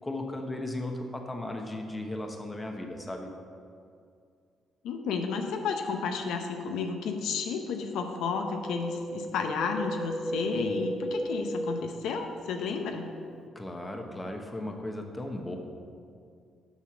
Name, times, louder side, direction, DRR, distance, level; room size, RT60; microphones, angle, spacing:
voice 1, 0.0-3.3 13.5-15.6, left 1 dB, 15° left, 3 dB, 1.0 m, -36 dB
voice 2, 4.8-13.1, left 5 dB, 85° left, 4 dB, 0.7 m, -32 dB
Wind, 8.4-12.8 13.0-13.1, right 1 dB, 5° right, 0.3 m, -35 dB
7.2 x 5.6 x 6.1 m, 2.3 s
cardioid pair, 90°, 0 cm